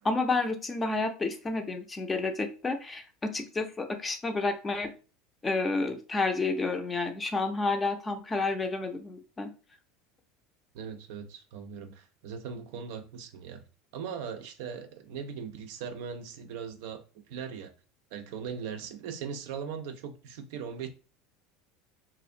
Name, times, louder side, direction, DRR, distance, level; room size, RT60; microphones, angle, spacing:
voice 1, 0.0-4.9 5.4-9.5, left 3 dB, 20° left, 0.5 m, -30 dB
voice 2, 10.7-13.6 13.9-17.0 17.3-17.7 18.1-20.9, right 6 dB, 65° right, 0.3 m, -39 dB
2.4 x 2.0 x 2.6 m
hypercardioid pair, 80°, 0 cm